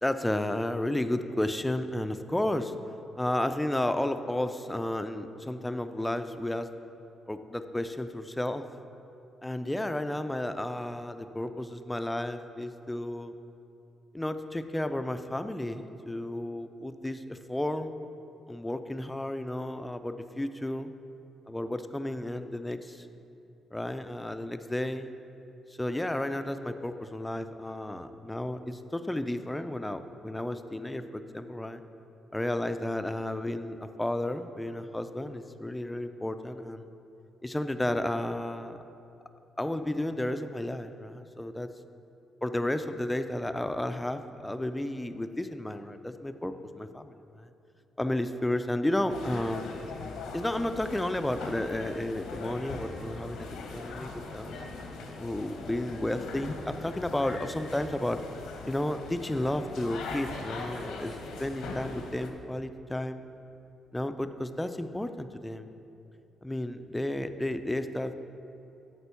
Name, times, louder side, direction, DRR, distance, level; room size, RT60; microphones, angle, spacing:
voice 1, 0.0-2.7 3.2-6.7 7.3-8.7 9.4-13.3 14.1-18.0 18.5-20.9 21.5-23.1 23.7-25.1 25.8-31.8 32.3-36.8 37.4-38.8 39.6-41.7 42.4-47.5 48.0-49.8 50.3-53.5 53.7-54.5 55.2-58.2 58.7-63.3 63.9-65.7 66.4-68.1, left 1 dB, 10° left, 10 dB, 0.3 m, -32 dB
sound 1, 49.1-62.3, left 3 dB, 90° left, 0.9 m, -40 dB
8.6 x 4.4 x 6.9 m, 2.8 s
cardioid pair, 140°, 0 cm